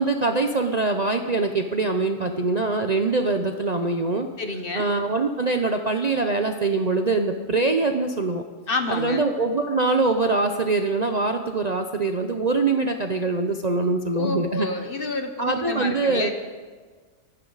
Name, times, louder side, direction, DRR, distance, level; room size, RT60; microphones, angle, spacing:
voice 1, 0.0-4.3 4.7-8.4 8.9-14.7 15.4-16.3, right 3 dB, 40° right, 5 dB, 0.6 m, -23 dB
voice 2, 4.4-4.9 8.7-9.2 14.1-16.3, left 3 dB, 45° left, 6 dB, 1.3 m, -29 dB
25.0 x 11.0 x 4.0 m, 1.5 s
omnidirectional pair, 1.4 m